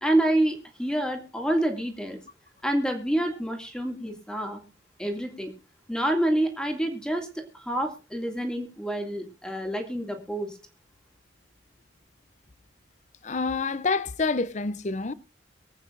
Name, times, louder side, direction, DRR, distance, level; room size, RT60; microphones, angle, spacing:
voice 1, 0.0-2.2 2.6-4.6 5.0-5.5 5.9-10.6, right 1 dB, 5° left, 2.2 m, -27 dB
voice 2, 13.2-15.1, left 4 dB, 40° left, 0.6 m, -27 dB
24.0 x 8.6 x 2.5 m
head